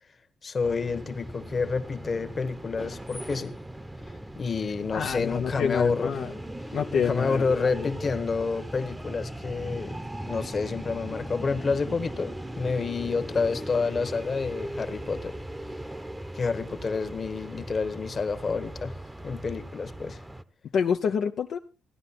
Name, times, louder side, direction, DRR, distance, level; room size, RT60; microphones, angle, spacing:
voice 1, 0.4-3.5 4.4-6.1 6.9-10.0 10.3-15.4 16.3-18.9 19.2-20.2, left 4 dB, 40° left, 1.4 m, -29 dB
sound 1, 0.6-20.4, right 1 dB, 10° right, 0.9 m, -38 dB
voice 2, 4.9-6.3 6.7-7.9 20.7-21.6, left 7 dB, 65° left, 0.7 m, -27 dB
15.5 x 11.0 x 4.2 m
cardioid pair, 90°, 0 cm